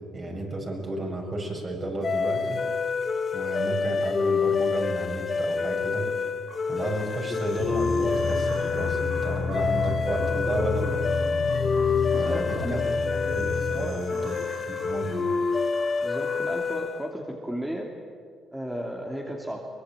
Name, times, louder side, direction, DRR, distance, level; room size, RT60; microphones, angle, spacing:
voice 1, 0.1-2.6 3.3-6.1 6.7-11.0 12.1-12.9 13.3-14.4 14.8-15.3, right 2 dB, 35° right, 1 dB, 7.2 m, -32 dB
sound 1, 2.0-17.1, left 5 dB, 40° left, 1.4 m, -27 dB
sound 2, 6.5-16.4, right 4 dB, 65° right, 4.1 m, -46 dB
sound 3, 7.6-13.9, left 4 dB, 60° left, 1.6 m, -31 dB
voice 2, 12.1-12.8 13.7-14.3 16.0-17.9 18.5-19.6, equal, 5° right, -1 dB, 2.9 m, -34 dB
24.0 x 21.5 x 9.0 m, 2.1 s
cardioid pair, 90°, 0 cm